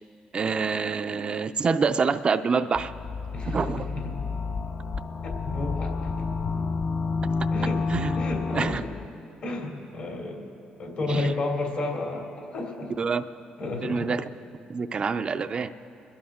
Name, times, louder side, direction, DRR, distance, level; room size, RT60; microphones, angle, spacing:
voice 1, 0.3-2.9 3.4-3.9 7.9-8.2 8.5-8.8 11.1-11.3 13.0-13.2 13.8-14.2 14.7-15.7, right 5 dB, 40° right, 10 dB, 0.4 m, -26 dB
sound 1, 2.7-9.1, left 4 dB, 40° left, 0.6 m, -29 dB
voice 2, 3.3-4.1 5.2-6.1 7.5-7.8 8.1-8.9 9.4-10.4 10.8-13.0 13.6-14.1, left 2 dB, 65° left, 0 dB, 2.9 m, -32 dB
28.5 x 10.5 x 3.6 m, 2.7 s
cardioid pair, 80°, 3 cm